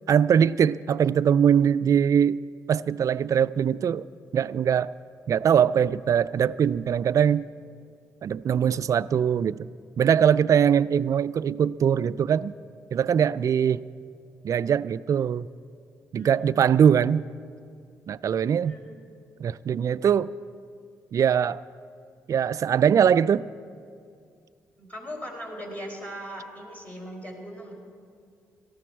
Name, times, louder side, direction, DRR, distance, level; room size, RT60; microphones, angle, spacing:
voice 1, 0.1-2.4 2.7-4.0 4.3-4.9 5.3-7.5 8.2-9.7 10.0-12.5 12.9-13.8 14.4-15.5 16.1-17.2 18.1-18.8 19.4-20.3 21.1-21.6 22.3-23.5, right 8 dB, 55° right, 0.4 m, -22 dB
voice 2, 18.6-19.0 24.8-27.7, equal, 25° left, 4.6 m, -39 dB
18.0 x 14.0 x 4.6 m
supercardioid pair, 60°, 7 cm